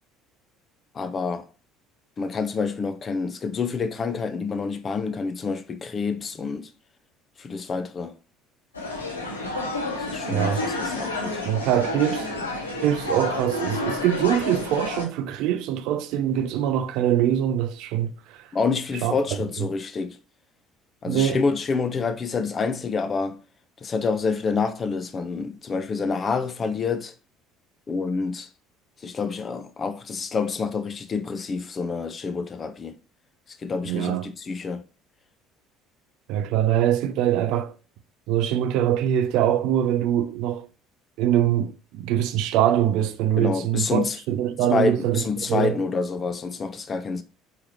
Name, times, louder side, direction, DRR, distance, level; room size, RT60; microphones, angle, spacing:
voice 1, 0.9-1.5 2.2-6.7 7.4-8.1 10.1-11.4 18.5-20.2 21.0-23.4 23.8-27.1 27.9-28.5 29.0-32.9 33.6-34.8 43.4-44.2 44.7-47.2, left 4 dB, 30° left, 0.5 m, -27 dB
sound 1, 8.7-15.1, left 2 dB, 80° left, 0.7 m, -30 dB
voice 2, 10.3-10.6 11.5-12.3 12.8-18.4 19.0-19.1 21.0-21.4 33.9-34.2 36.3-37.7 38.3-40.7 41.2-45.8, right 11 dB, 55° right, 0.4 m, -23 dB
4.7 x 3.1 x 3.0 m
figure-of-eight pair, 60°, 0 cm